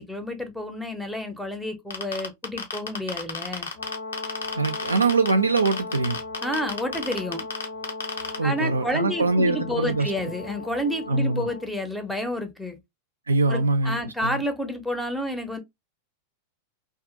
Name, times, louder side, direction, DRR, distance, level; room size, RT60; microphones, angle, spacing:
voice 1, 0.0-3.7 6.4-7.4 8.4-12.8 13.5-15.6, left 1 dB, ahead, 0.5 m, -30 dB
Geiger Counter Hotspot (Long), 1.9-5.3 5.6-8.4, left 5 dB, 70° left, 0.6 m, -31 dB
Brass instrument, 3.7-11.7, left 2 dB, 90° left, 1.2 m, -37 dB
voice 2, 4.6-6.2 8.4-10.1 11.1-11.5 13.3-14.4, right 3 dB, 75° right, 0.3 m, -23 dB
2.5 x 2.3 x 2.5 m
figure-of-eight pair, 90°, 0 cm